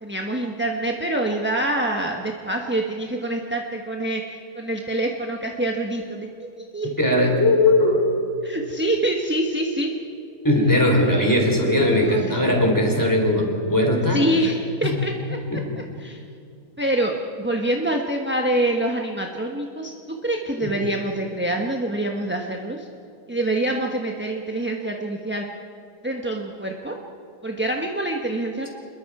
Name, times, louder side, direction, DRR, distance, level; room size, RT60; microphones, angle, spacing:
voice 1, 0.0-6.9 8.4-9.9 12.0-12.3 14.1-15.4 16.0-16.2 16.8-19.9 20.2-22.9 23.3-25.4 26.0-27.0 27.4-28.7, right 1 dB, 10° right, 1 dB, 0.9 m, -25 dB
voice 2, 7.0-8.0 10.4-14.2 14.8-14.9 15.5-15.7, left 1 dB, 10° left, 1 dB, 3.6 m, -19 dB
26.5 x 21.5 x 4.8 m, 2.6 s
omnidirectional pair, 1.8 m